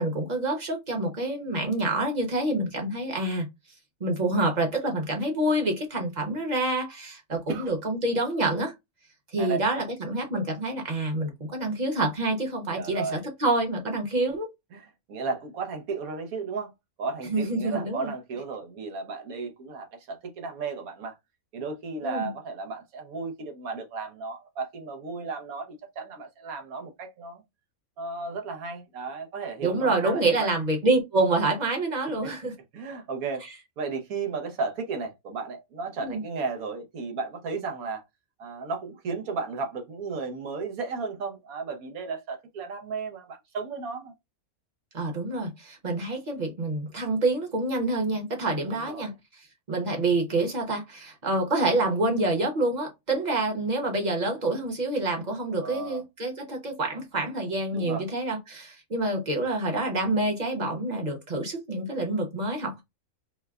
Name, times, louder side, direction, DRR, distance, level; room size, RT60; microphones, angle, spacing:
voice 1, 0.0-3.5 4.0-8.7 9.3-14.5 17.3-18.1 22.0-22.3 29.6-32.5 36.0-36.2 44.9-49.1 49.7-62.8, right 2 dB, 35° right, 0.9 m, -27 dB
voice 2, 12.7-13.2 14.7-16.7 17.0-21.1 21.5-27.4 28.0-30.5 32.2-32.3 32.7-33.5 33.8-38.0 38.4-44.1 48.7-49.1 55.5-56.0 57.7-58.0, right 4 dB, 85° right, 1.3 m, -34 dB
4.5 x 2.1 x 2.3 m
omnidirectional pair, 1.5 m